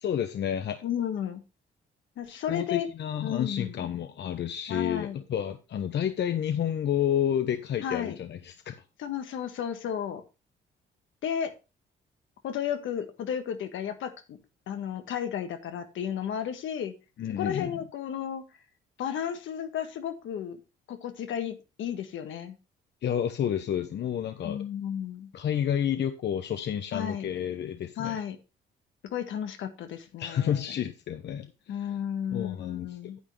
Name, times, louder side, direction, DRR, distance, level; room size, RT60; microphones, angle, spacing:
voice 1, 0.0-0.8 2.3-8.7 17.2-17.7 23.0-24.6 25.3-28.2 30.2-31.9 32.3-32.9, left 9 dB, 60° left, 8 dB, 1.0 m, -30 dB
voice 2, 0.8-1.4 2.2-2.9 3.2-3.8 4.7-5.2 7.8-8.2 9.0-10.2 11.2-11.5 12.4-14.4 14.7-16.9 17.3-18.4 19.0-20.6 20.9-22.6 24.4-25.3 26.9-27.3 28.0-28.4 29.0-30.7 31.7-33.2, left 9 dB, 80° left, 7 dB, 1.7 m, -33 dB
9.5 x 8.5 x 3.3 m, 0.28 s
cardioid pair, 90°, 20 cm